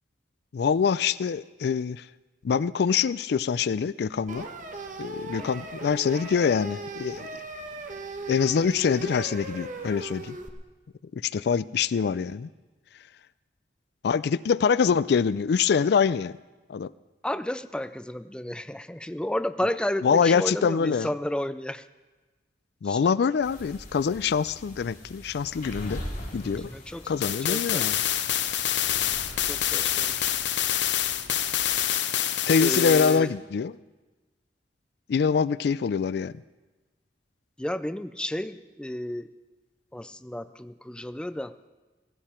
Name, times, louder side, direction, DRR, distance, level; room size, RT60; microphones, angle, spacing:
voice 1, 0.5-2.0 2.4-4.5 5.0-7.3 8.3-10.4 11.1-12.5 14.0-16.4 16.7-16.9 20.0-21.1 22.8-26.0 26.3-26.7 27.1-28.0 32.5-33.7 35.1-36.3, left 6 dB, 65° left, 18 dB, 0.4 m, -24 dB
sound 1, 4.3-10.5, right 2 dB, 45° right, 1.3 m, -38 dB
voice 2, 17.2-21.9 22.8-23.0 26.4-27.9 29.4-30.3 32.6-33.3 37.6-39.3 39.9-41.5, left 1 dB, 5° left, 12 dB, 0.4 m, -32 dB
sound 2, 23.4-31.9, left 1 dB, 50° left, 3.6 m, -42 dB
sound 3, 27.2-33.2, left 11 dB, 85° left, 0.8 m, -26 dB
16.5 x 16.0 x 4.4 m, 1.2 s
head